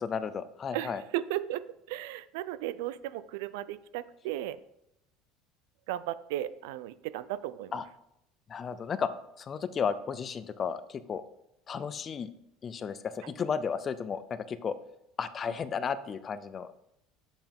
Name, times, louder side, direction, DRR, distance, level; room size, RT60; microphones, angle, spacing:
voice 1, 0.0-1.0 7.7-7.8 8.5-9.1 9.4-11.2 11.7-12.3 12.6-14.7 15.2-16.7, left 6 dB, 20° left, 14 dB, 0.3 m, -33 dB
voice 2, 0.7-4.6 5.9-7.8 13.2-13.3, right 13 dB, 85° right, 16 dB, 0.4 m, -35 dB
7.6 x 7.0 x 3.5 m, 0.81 s
cardioid pair, 170°, 0 cm